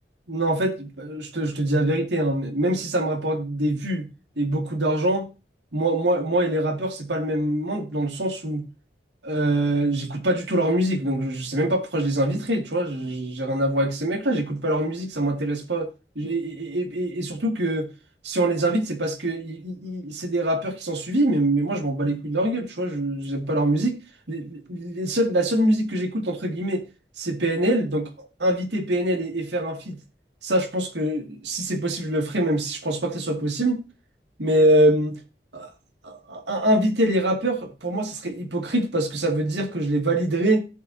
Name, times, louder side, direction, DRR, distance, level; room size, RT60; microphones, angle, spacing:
voice 1, 0.3-4.1 4.4-5.3 5.7-8.6 9.2-15.9 16.2-17.9 18.2-23.9 24.3-26.9 27.2-30.0 30.4-33.8 34.4-35.2 35.5-35.7 36.0-40.6, right 1 dB, 85° right, 2.4 m, -24 dB
16.5 x 5.8 x 2.8 m
head